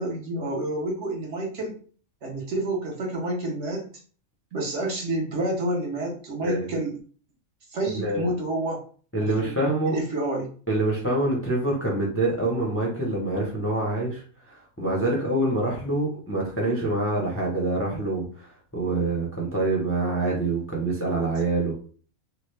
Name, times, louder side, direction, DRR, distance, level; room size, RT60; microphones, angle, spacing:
voice 1, 0.0-1.8 2.2-3.9 4.5-7.0 7.7-8.8 9.4-9.6 9.9-10.5, right 1 dB, 60° right, -1 dB, 1.1 m, -29 dB
voice 2, 9.1-10.0 10.7-21.7, right 2 dB, 15° left, -2 dB, 0.5 m, -26 dB
2.9 x 2.4 x 3.2 m, 0.42 s
omnidirectional pair, 1.5 m